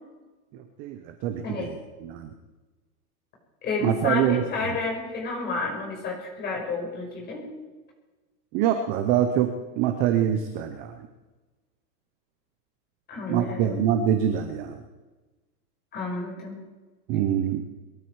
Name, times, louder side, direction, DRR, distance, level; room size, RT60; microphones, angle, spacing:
voice 1, 0.5-1.7 2.0-2.3 3.8-4.4 8.5-9.5 9.8-10.9 13.3-14.8 17.1-17.6, right 10 dB, 20° right, 8 dB, 0.6 m, -24 dB
voice 2, 3.6-7.4 13.1-13.8 15.9-16.6, left 3 dB, 20° left, -1 dB, 5.4 m, -31 dB
22.0 x 13.0 x 4.7 m, 1.2 s
hypercardioid pair, 155°, 49 cm